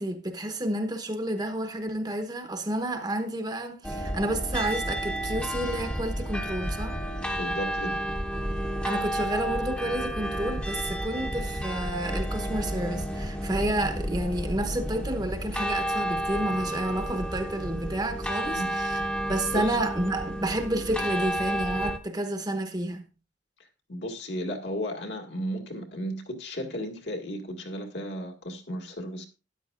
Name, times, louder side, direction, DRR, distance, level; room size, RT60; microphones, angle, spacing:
voice 1, 0.0-7.0 8.8-23.0, right 1 dB, 20° right, 1.0 m, -30 dB
sound 1, 3.8-22.0, equal, 5° left, 0.9 m, -31 dB
voice 2, 7.3-8.0 18.4-19.1 19.5-19.8 23.9-29.3, equal, 65° left, 1.9 m, -34 dB
12.5 x 10.0 x 2.5 m
head